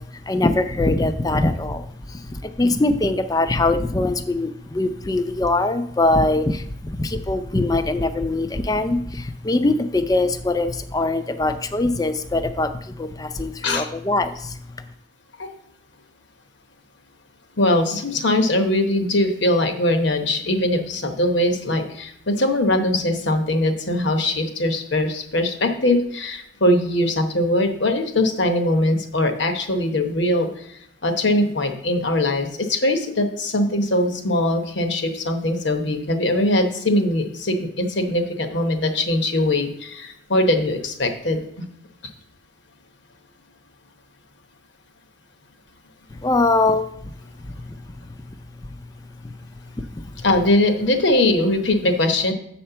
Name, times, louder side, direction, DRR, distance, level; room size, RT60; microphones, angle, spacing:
voice 1, 0.0-14.6 46.1-47.1 47.7-47.8 48.0-48.1 49.2-49.3 49.8-50.2, left 2 dB, 20° left, 10 dB, 0.4 m, -22 dB
voice 2, 17.6-41.4 50.2-52.3, left 1 dB, 65° left, 6 dB, 1.0 m, -21 dB
7.5 x 4.3 x 6.7 m, 0.74 s
head